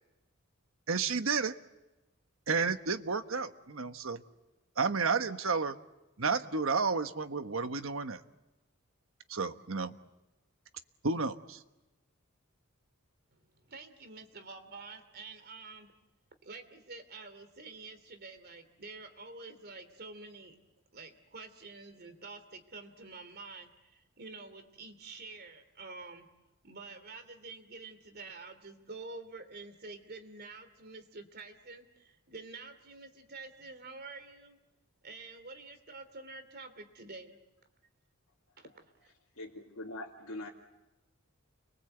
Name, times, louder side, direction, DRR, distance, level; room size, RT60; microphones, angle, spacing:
voice 1, 0.9-1.5 2.5-4.2 4.8-5.8 6.2-8.2 9.3-9.9 11.0-11.6, right 4 dB, 70° right, 9 dB, 1.3 m, -31 dB
voice 2, 13.7-15.9 16.4-20.6 20.9-26.3 26.6-34.6 35.0-37.4 38.6-38.7 39.0-39.1, right 3 dB, 50° right, 9 dB, 2.9 m, -48 dB
voice 3, 39.3-40.5, left 1 dB, 85° left, -4 dB, 2.7 m, -43 dB
30.0 x 23.0 x 8.0 m, 1.0 s
head